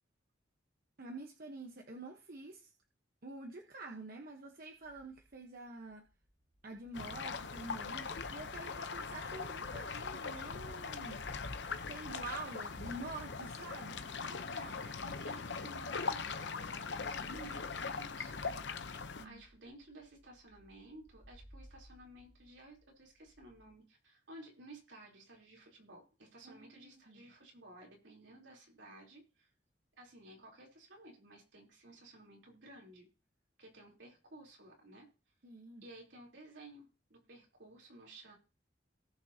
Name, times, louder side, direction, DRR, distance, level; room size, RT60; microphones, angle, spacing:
voice 1, 1.0-2.7 3.2-6.0 6.6-11.2 11.9-14.4 19.0-19.4 26.4-27.2 35.4-35.8, right 2 dB, 55° right, 2 dB, 1.1 m, -47 dB
sound 1, 4.6-23.7, equal, 15° right, 1.2 m, -62 dB
sound 2, 6.9-19.2, left 5 dB, 70° left, 0.8 m, -41 dB
voice 2, 14.0-18.5 18.8-29.5 30.0-33.1 33.6-35.1 35.8-38.4, right 1 dB, 80° right, -1 dB, 3.6 m, -55 dB
18.5 x 6.2 x 2.9 m, 0.32 s
head